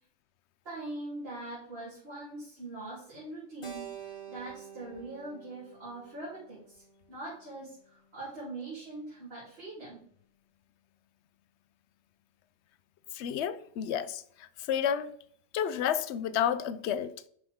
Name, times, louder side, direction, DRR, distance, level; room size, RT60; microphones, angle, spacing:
voice 1, 0.6-6.8 7.1-10.0, right 2 dB, 55° right, 3.5 m, -42 dB
Keyboard (musical), 3.6-8.0, right 8 dB, 25° left, 1.2 m, -48 dB
voice 2, 13.1-14.2 14.7-15.1 15.5-17.1, left 9 dB, 65° left, 0.9 m, -30 dB
11.0 x 4.8 x 3.6 m
omnidirectional pair, 1.3 m